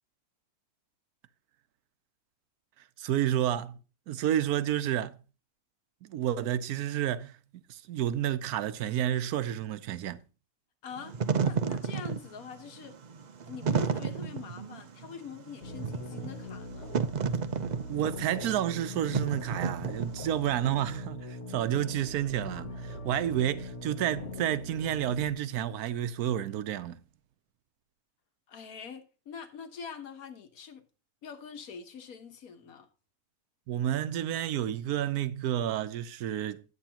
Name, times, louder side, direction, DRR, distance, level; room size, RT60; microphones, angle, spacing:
voice 1, 3.0-3.8 4.1-5.2 6.0-7.4 7.7-10.2 17.9-27.0 33.7-36.6, right 11 dB, 85° right, 1.2 m, -30 dB
voice 2, 10.8-13.0 13.5-16.9 28.5-30.9 31.2-32.9, left 6 dB, 75° left, 1.7 m, -44 dB
Wind / Fire, 11.0-20.5, right 6 dB, 55° right, 0.5 m, -32 dB
sound 1, 15.6-25.3, left 1 dB, 55° left, 1.1 m, -41 dB
11.0 x 8.6 x 2.9 m
omnidirectional pair, 1.6 m